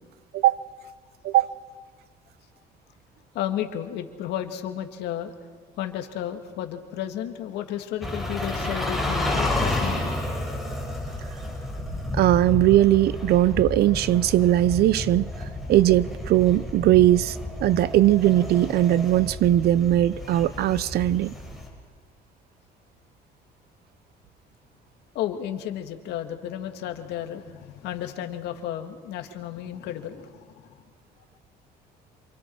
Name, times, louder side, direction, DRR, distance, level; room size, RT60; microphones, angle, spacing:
voice 1, 3.3-5.3 5.8-10.1 25.1-30.8, left 11 dB, 85° left, 2.1 m, -33 dB
sound 1, 8.0-21.7, left 1 dB, ahead, 6.2 m, -31 dB
voice 2, 12.1-15.3 15.7-21.3, right 13 dB, 70° right, 0.8 m, -20 dB
28.0 x 28.0 x 4.7 m
cardioid pair, 110°, 17 cm